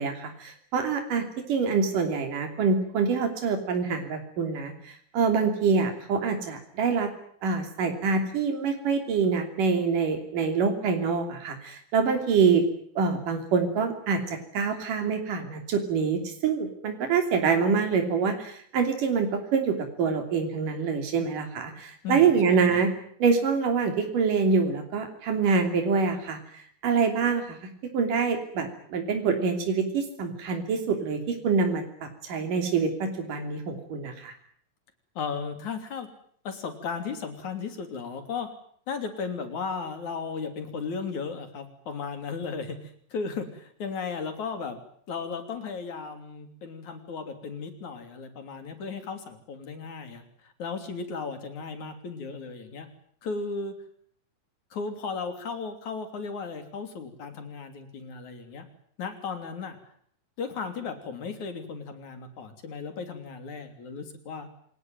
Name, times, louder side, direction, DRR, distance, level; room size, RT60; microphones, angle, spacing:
voice 1, 0.0-7.1 7.4-12.6 13.0-22.9 23.2-31.8 32.2-34.3, right 5 dB, 90° right, 5 dB, 4.6 m, -26 dB
voice 2, 22.0-22.8 35.2-36.1 36.4-38.5 38.9-44.8 45.1-52.9 53.2-53.8 54.7-58.6 59.0-59.8 60.4-64.5, left 5 dB, 65° left, 8 dB, 4.5 m, -35 dB
26.5 x 20.0 x 9.3 m, 0.63 s
omnidirectional pair, 3.7 m